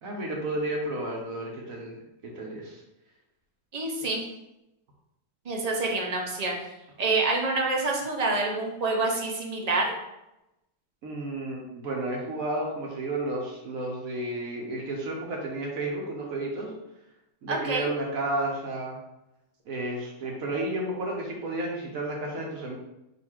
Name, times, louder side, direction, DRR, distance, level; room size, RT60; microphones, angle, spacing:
voice 1, 0.0-2.8 11.0-16.7 17.4-19.0 19.7-22.8, right 2 dB, 65° right, -1 dB, 1.2 m, -32 dB
voice 2, 3.7-4.2 5.5-6.5 7.0-9.9 17.5-17.9, right 3 dB, 45° right, 0 dB, 0.5 m, -27 dB
4.0 x 2.6 x 4.3 m, 0.91 s
omnidirectional pair, 1.6 m